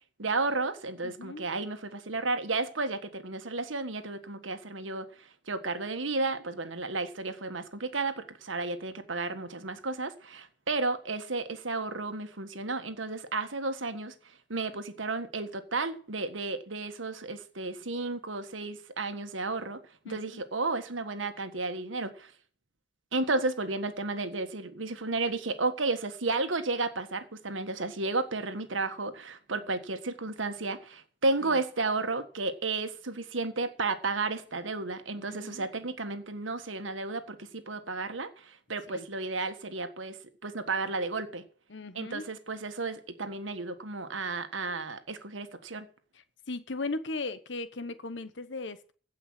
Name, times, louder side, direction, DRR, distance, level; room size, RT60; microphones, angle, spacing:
voice 1, 0.2-19.8 20.0-22.3 23.1-40.2 40.4-41.5 41.9-45.9, right 3 dB, 90° right, 1.6 m, -33 dB
voice 2, 1.0-1.4 20.0-20.4 31.4-31.6 35.1-35.7 38.9-39.0 41.7-42.2 46.5-48.9, left 3 dB, 75° left, 1.1 m, -37 dB
16.0 x 5.6 x 7.7 m
head